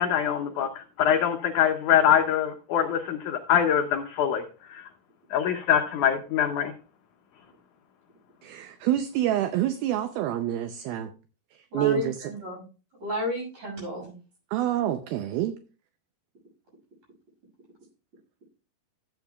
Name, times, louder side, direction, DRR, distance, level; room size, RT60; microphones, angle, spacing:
voice 1, 0.0-4.4 4.7-4.9 5.3-6.7, left 9 dB, 85° left, 5 dB, 1.7 m, -24 dB
voice 2, 8.4-11.1 11.7-12.3 14.5-15.5, right 12 dB, 80° right, 8 dB, 2.4 m, -27 dB
voice 3, 11.7-12.6 13.0-14.1, left 1 dB, 45° right, -1 dB, 7.6 m, -32 dB
14.0 x 8.9 x 2.3 m, 0.35 s
omnidirectional pair, 4.6 m